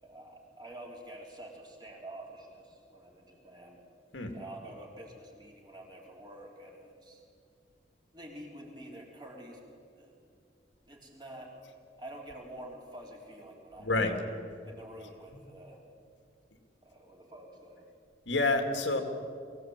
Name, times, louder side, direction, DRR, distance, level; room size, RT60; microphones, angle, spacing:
voice 1, 0.0-3.8 4.3-7.2 8.1-9.6 10.0-10.1 10.9-11.5 12.0-13.9 14.6-15.8 16.8-17.9, right 1 dB, 25° right, -1 dB, 3.8 m, -48 dB
voice 2, 13.8-14.2 18.3-19.0, left 2 dB, 90° left, 5 dB, 2.5 m, -28 dB
22.5 x 16.5 x 8.9 m, 2.3 s
head